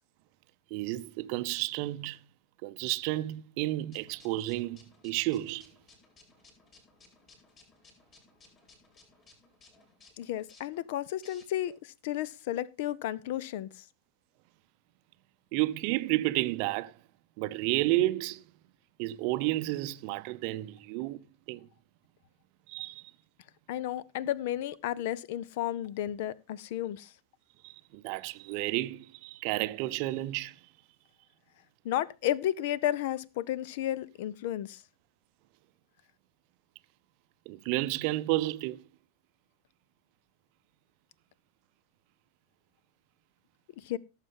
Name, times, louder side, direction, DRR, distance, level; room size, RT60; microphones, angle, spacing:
voice 1, 0.7-2.2 2.6-5.7 15.5-16.9 17.4-18.4 19.0-21.2 21.5-21.7 22.7-23.0 27.6-30.6 37.5-38.8, right 17 dB, 45° right, 0.6 m, -31 dB
sound 1, 3.9-11.8, left 3 dB, 30° left, 4.6 m, -60 dB
voice 2, 10.2-13.8 23.7-27.1 31.8-34.8 43.8-44.0, left 12 dB, 50° left, 0.5 m, -33 dB
17.0 x 7.3 x 3.7 m
figure-of-eight pair, 90°, 0 cm